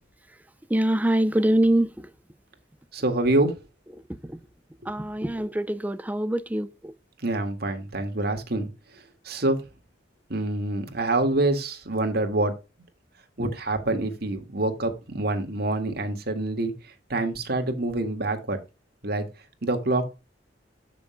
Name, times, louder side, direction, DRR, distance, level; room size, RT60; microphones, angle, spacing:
voice 1, 0.7-2.1 4.2-4.4 4.9-6.9, right 1 dB, 10° right, 0.6 m, -24 dB
voice 2, 2.9-3.6 7.2-8.7 9.3-9.6 10.3-12.5 13.4-16.7 17.1-18.6 19.0-19.2 19.6-20.1, right 2 dB, 60° right, 2.0 m, -26 dB
13.5 x 6.2 x 2.2 m
head